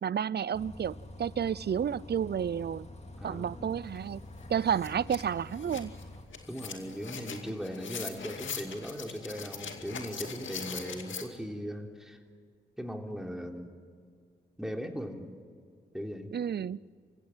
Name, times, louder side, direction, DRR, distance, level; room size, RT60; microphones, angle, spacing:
voice 1, 0.0-2.9 3.2-4.2 4.5-5.9 16.3-16.8, right 8 dB, 55° right, 23 dB, 0.6 m, -31 dB
Bus, 0.5-6.3, left 1 dB, 35° left, 3.2 m, -47 dB
voice 2, 3.2-3.8 6.5-12.2 12.8-13.7 14.6-15.3 15.9-16.3, equal, ahead, 3 dB, 3.5 m, -39 dB
sound 1, 3.9-4.0 4.4-11.2, left 6 dB, 75° left, 2.3 m, -42 dB
29.0 x 16.0 x 9.1 m, 2.1 s
supercardioid pair, 45°, 20 cm